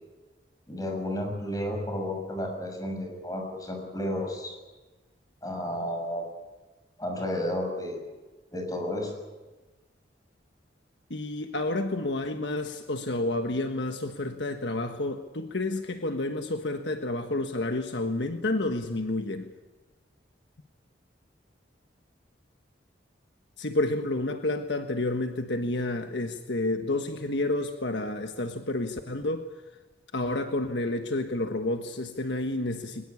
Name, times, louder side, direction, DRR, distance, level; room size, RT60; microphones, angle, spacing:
voice 1, 0.7-4.5 5.4-6.2 7.0-8.1 8.5-9.1, left 1 dB, 20° left, 3 dB, 6.6 m, -32 dB
voice 2, 11.1-19.5 23.6-29.4 30.1-33.0, left 2 dB, 70° left, 6 dB, 1.4 m, -30 dB
22.0 x 20.5 x 8.6 m, 1.2 s
head